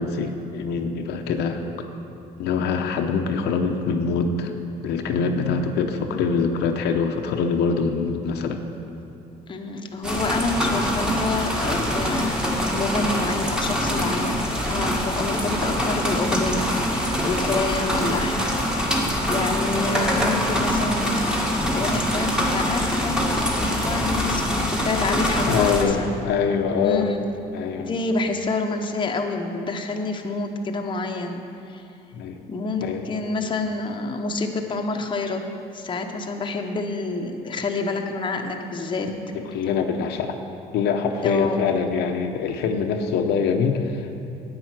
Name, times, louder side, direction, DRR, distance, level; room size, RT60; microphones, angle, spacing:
voice 1, 0.0-1.6 2.4-4.5 4.8-8.6 25.5-27.1 27.5-27.9 32.1-32.4 32.8-33.1 39.3-40.4 40.7-44.2, left 5 dB, 80° left, 4 dB, 0.8 m, -24 dB
voice 2, 9.5-18.4 18.7-18.9 19.3-26.1 26.8-27.2 27.8-31.8 32.5-35.5 35.7-39.1 41.2-41.7, left 3 dB, 30° left, 3 dB, 0.9 m, -28 dB
sound 1, 10.0-25.8, equal, 5° right, 1.6 m, -24 dB
9.9 x 8.7 x 6.0 m, 2.8 s
cardioid pair, 110°, 17 cm